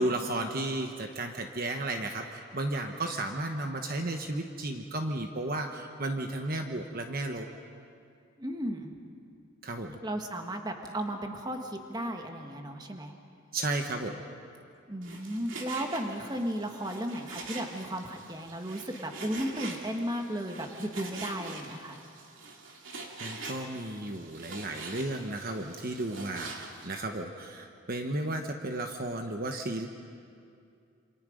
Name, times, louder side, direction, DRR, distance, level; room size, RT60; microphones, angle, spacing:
voice 1, 0.0-7.5 9.6-10.0 13.5-14.2 23.2-29.9, right 2 dB, 45° right, 4 dB, 1.2 m, -33 dB
voice 2, 8.4-8.9 10.0-13.1 14.9-22.0, right 1 dB, 20° right, 3 dB, 1.6 m, -35 dB
Frying (food), 15.0-26.9, right 3 dB, 70° right, 2.8 m, -44 dB
28.0 x 26.5 x 5.2 m, 2.4 s
head